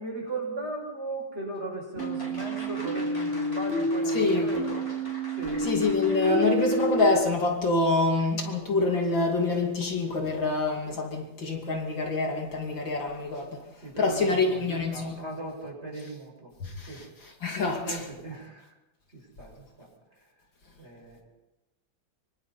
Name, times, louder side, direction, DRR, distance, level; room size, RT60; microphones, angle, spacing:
voice 1, 0.0-4.9 5.3-5.7 13.8-16.5 16.8-17.0 17.8-18.7 19.1-19.9 20.8-21.2, right 2 dB, 30° right, 7.3 m, -37 dB
sound 1, 2.0-7.1, right 1 dB, 25° left, 5.5 m, -29 dB
voice 2, 4.1-4.5 5.6-13.6 14.0-15.2 16.6-18.0, left 3 dB, 65° left, 3.4 m, -26 dB
25.5 x 24.5 x 4.3 m
omnidirectional pair, 2.2 m